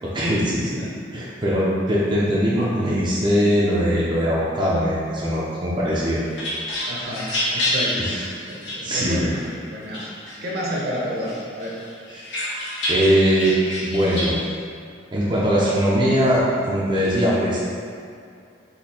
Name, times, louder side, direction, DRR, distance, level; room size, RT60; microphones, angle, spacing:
voice 1, 0.0-6.2 8.0-8.2 8.8-9.3 12.1-12.2 12.9-13.6 13.8-14.4 15.1-17.6, equal, 25° right, -8 dB, 0.5 m, -21 dB
sound 1, 5.9-9.5 9.9-10.8 11.2-14.3, left 1 dB, 80° left, 1.2 m, -28 dB
voice 2, 6.8-8.0 8.5-9.4 9.7-10.1 10.4-11.7, equal, 55° right, -4 dB, 0.8 m, -30 dB
4.2 x 2.7 x 4.2 m, 2.4 s
head